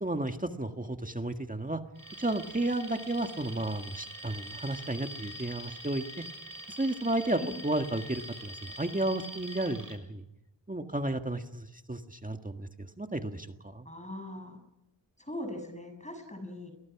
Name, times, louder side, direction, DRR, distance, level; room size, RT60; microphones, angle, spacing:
voice 1, 0.0-1.8 2.2-6.2 6.7-10.2 10.7-13.9, right 2 dB, 20° right, 6 dB, 1.8 m, -33 dB
Alarm, 2.0-10.0, right 1 dB, 50° right, 6.7 m, -44 dB
voice 2, 13.9-14.6 15.2-16.7, left 1 dB, 15° left, 6 dB, 6.9 m, -40 dB
29.5 x 23.5 x 6.0 m, 0.87 s
wide cardioid pair, 75°, 44 cm